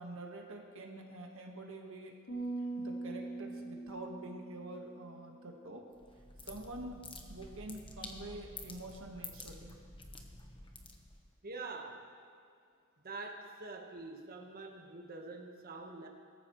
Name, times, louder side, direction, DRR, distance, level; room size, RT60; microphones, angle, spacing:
voice 1, 0.0-2.2 2.8-5.9 6.4-9.8, right 2 dB, 70° right, 1 dB, 1.5 m, -46 dB
sound 1, 2.3-5.7, right 2 dB, 55° left, 4.3 m, -42 dB
sound 2, 5.9-11.4, left 3 dB, 25° left, 1.1 m, -50 dB
voice 2, 11.4-12.1 13.0-16.1, right 3 dB, 45° right, 2 dB, 1.4 m, -45 dB
21.5 x 14.0 x 3.2 m, 2.2 s
head